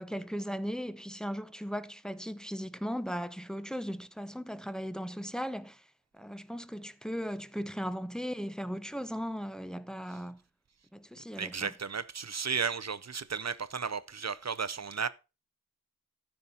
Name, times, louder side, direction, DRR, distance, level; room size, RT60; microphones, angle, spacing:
voice 1, 0.0-5.8 6.1-10.4 10.9-11.7, equal, ahead, 0.6 m, -37 dB
voice 2, 11.4-15.1, right 6 dB, 55° right, 0.6 m, -34 dB
14.0 x 5.3 x 4.2 m
wide cardioid pair, 50°, 32 cm